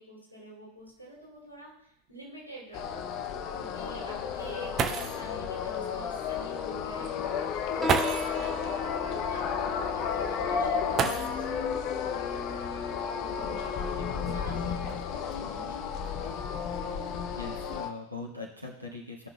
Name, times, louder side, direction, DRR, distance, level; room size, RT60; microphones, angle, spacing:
voice 1, 0.0-3.1 3.6-7.2 7.7-9.0 9.3-11.9 13.2-15.9, right 1 dB, 85° left, -4 dB, 2.5 m, -47 dB
sound 1, 0.9-1.0 1.4-1.5 2.1-2.2 4.4-4.5 4.8-5.3 6.6-6.7 7.8-8.4 10.9-11.7 13.0-13.1 13.9-15.3 16.0-16.4 16.7-17.1, right 7 dB, 30° right, 0.6 m, -32 dB
sound 2, 2.7-17.9, left 7 dB, 40° left, 0.6 m, -32 dB
Piano, 7.8-14.9, equal, 10° right, 1.3 m, -41 dB
voice 2, 14.1-14.6 17.4-19.3, left 3 dB, 85° right, -2 dB, 1.6 m, -41 dB
15.5 x 5.9 x 2.2 m, 0.78 s
figure-of-eight pair, 90°, 0 cm